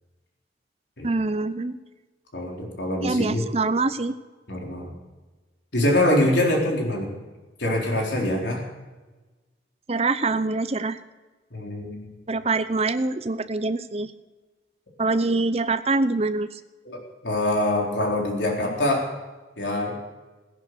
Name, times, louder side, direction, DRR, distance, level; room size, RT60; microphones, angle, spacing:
voice 1, 1.0-1.8 3.0-4.2 9.9-11.0 12.3-14.1 15.0-16.5, right 3 dB, 35° right, 12 dB, 0.7 m, -24 dB
voice 2, 2.3-3.4 4.5-4.9 5.7-7.2 7.6-8.6 11.5-12.2 16.8-19.1 19.6-19.9, left 1 dB, 80° left, 0 dB, 4.0 m, -24 dB
17.0 x 10.5 x 6.7 m, 1.2 s
head